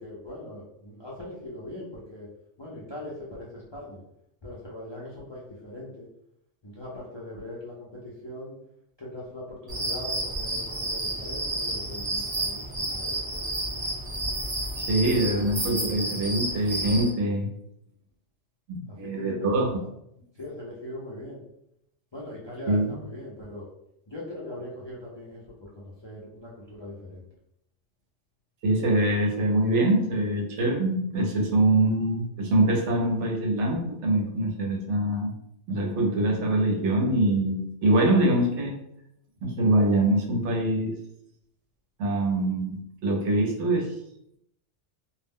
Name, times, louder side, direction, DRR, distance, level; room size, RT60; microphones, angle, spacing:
voice 1, 0.0-2.3 2.6-4.0 4.4-6.1 6.6-8.6 9.0-12.6 12.9-13.5 14.2-15.9 18.9-19.9 20.3-21.4 22.1-23.7 24.1-27.3, left 1 dB, 40° left, -6 dB, 0.4 m, -40 dB
sound 1, 9.7-17.1, right 1 dB, 35° right, 0.8 m, -31 dB
voice 2, 14.8-17.5 18.7-19.7 22.7-22.9 28.6-35.3 35.7-38.7 39.4-40.9 42.0-44.0, right 1 dB, 75° right, 1 dB, 1.0 m, -24 dB
2.4 x 2.0 x 3.5 m, 0.77 s
omnidirectional pair, 1.2 m